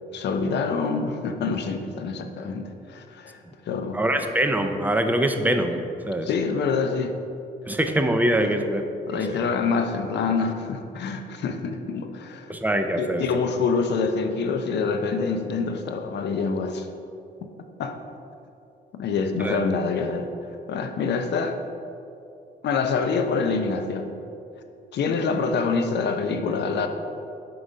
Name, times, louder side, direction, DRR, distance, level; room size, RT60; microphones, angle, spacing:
voice 1, 0.1-4.0 6.2-7.2 8.4-8.5 9.1-12.5 13.0-16.9 17.8-18.0 18.9-21.6 22.6-24.1 24.9-26.9, left 4 dB, 60° left, 6 dB, 0.5 m, -26 dB
voice 2, 3.9-6.3 7.7-8.8 9.1-9.4 12.5-13.2 19.4-19.6, right 1 dB, 10° right, 6 dB, 0.4 m, -24 dB
4.7 x 3.8 x 5.3 m, 2.6 s
cardioid pair, 90°, 20 cm